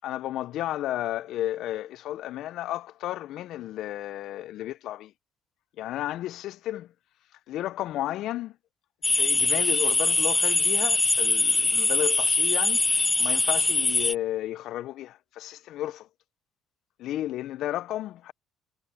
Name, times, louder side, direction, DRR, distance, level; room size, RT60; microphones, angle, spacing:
voice 1, 0.0-5.1 5.8-6.9 7.5-8.6 9.1-16.1 17.0-18.3, left 13 dB, 65° left, 1.2 m, -33 dB
sound 1, 9.0-14.1, left 3 dB, 20° left, 0.9 m, -23 dB
hypercardioid pair, 55°, 0 cm